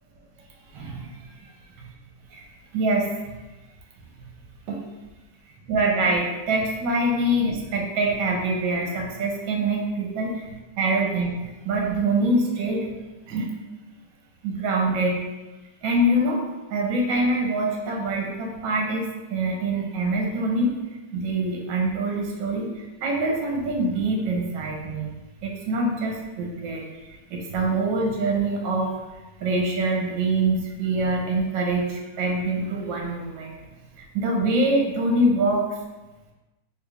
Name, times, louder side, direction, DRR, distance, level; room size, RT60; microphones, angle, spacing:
voice 1, 0.7-1.2 1.8-1.9 2.3-2.4 2.7-3.1 4.2-4.3 4.7-4.8 5.7-12.9 13.3-13.5 14.4-15.2 15.8-16.4 16.7-20.7 21.1-25.1 25.4-28.9 29.4-33.5 34.0-35.7, right 2 dB, 75° right, 0 dB, 1.3 m, -25 dB
3.8 x 2.3 x 3.1 m, 1.1 s
omnidirectional pair, 2.1 m